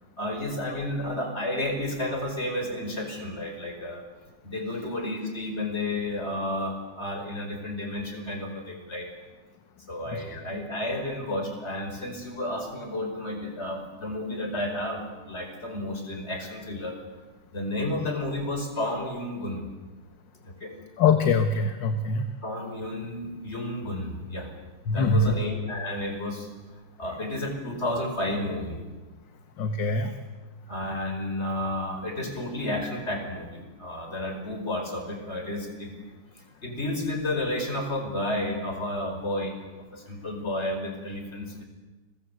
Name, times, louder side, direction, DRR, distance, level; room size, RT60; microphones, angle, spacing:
voice 1, 0.2-4.0 4.4-9.1 9.9-17.0 17.5-19.7 20.4-20.7 22.4-24.5 24.9-26.5 27.0-28.8 30.7-36.0 36.3-41.7, left 1 dB, 30° left, 4 dB, 5.3 m, -32 dB
voice 2, 10.1-10.4 21.0-22.3 24.9-25.4 29.6-30.2, left 4 dB, 60° left, 7 dB, 2.0 m, -23 dB
29.5 x 22.5 x 8.2 m, 1.2 s
omnidirectional pair, 2.4 m